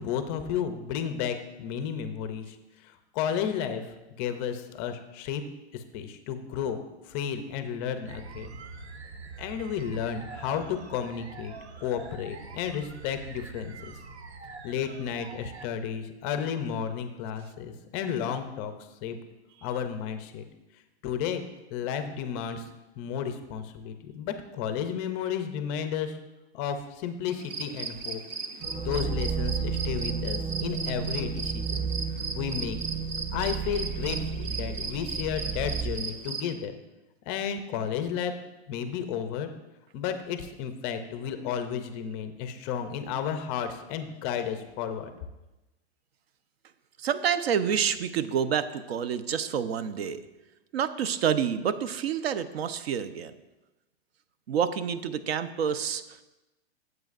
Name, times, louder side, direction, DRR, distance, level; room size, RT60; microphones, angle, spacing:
voice 1, 0.0-5.4 5.7-8.6 9.4-11.6 11.8-14.0 14.6-18.7 19.0-19.2 19.6-20.4 21.0-21.4 21.7-22.7 23.0-26.2 26.5-28.2 28.8-31.9 32.3-32.8 33.3-36.8 37.3-38.3 38.7-39.5 39.9-45.1, left 8 dB, 20° left, 8 dB, 0.4 m, -32 dB
sound 1, 8.1-15.7, right 4 dB, 90° right, 1.1 m, -44 dB
sound 2, 27.3-36.4, right 4 dB, 25° right, 0.5 m, -37 dB
sound 3, 28.6-35.9, right 6 dB, 40° right, 3.7 m, -32 dB
voice 2, 47.0-50.2 50.7-53.4 54.5-56.2, right 8 dB, 70° right, 13 dB, 0.7 m, -28 dB
14.5 x 7.9 x 2.5 m, 1.0 s
hypercardioid pair, 155°, 32 cm